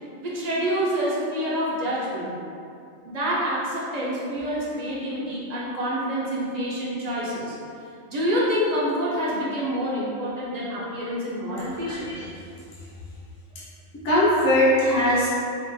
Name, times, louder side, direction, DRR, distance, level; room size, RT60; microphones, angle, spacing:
voice 1, 0.2-2.4 3.0-7.5 8.1-12.1, equal, 45° right, -6 dB, 0.6 m, -27 dB
voice 2, 11.8-12.3 14.0-15.3, left 1 dB, 55° left, -8 dB, 0.9 m, -20 dB
4.4 x 2.3 x 2.6 m, 2.5 s
omnidirectional pair, 1.4 m